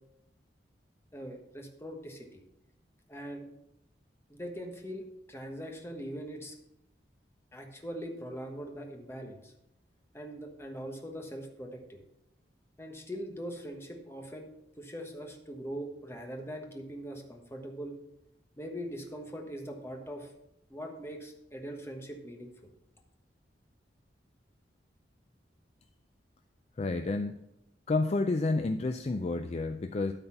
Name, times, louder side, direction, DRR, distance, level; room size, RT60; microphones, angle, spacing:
voice 1, 1.1-2.4 3.1-3.5 4.3-5.0 5.3-6.5 7.5-9.5 10.1-12.0 12.8-18.0 18.6-20.3 20.7-22.7, equal, 15° left, 2 dB, 1.2 m, -41 dB
voice 2, 26.8-27.4 27.9-30.1, left 3 dB, 35° left, 7 dB, 0.4 m, -30 dB
12.5 x 4.2 x 5.7 m, 0.84 s
head